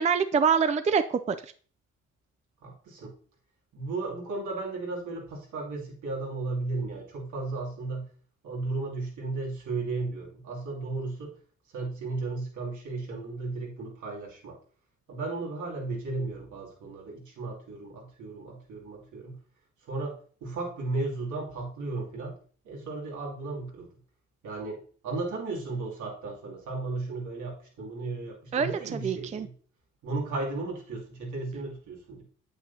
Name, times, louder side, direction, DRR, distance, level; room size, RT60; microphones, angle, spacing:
voice 1, 0.0-1.4 28.5-29.5, right 6 dB, 25° right, 11 dB, 0.4 m, -25 dB
voice 2, 2.6-3.1 3.7-8.0 8.4-11.3 11.7-14.6 15.1-19.4 19.9-22.4 22.6-23.9 24.4-29.5 30.0-32.2, right 3 dB, 75° right, -3 dB, 2.8 m, -35 dB
8.6 x 8.0 x 2.8 m, 0.43 s
cardioid pair, 90°, 30 cm